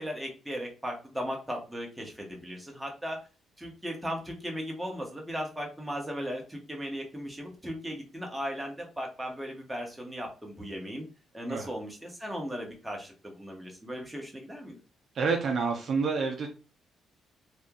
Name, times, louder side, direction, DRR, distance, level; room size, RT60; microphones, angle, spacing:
voice 1, 0.0-3.2 3.6-11.0 11.3-14.8, equal, 5° right, 0 dB, 1.2 m, -37 dB
voice 2, 15.1-16.5, right 4 dB, 55° right, 2 dB, 0.7 m, -28 dB
3.0 x 2.6 x 3.7 m, 0.34 s
cardioid pair, 90°, 0 cm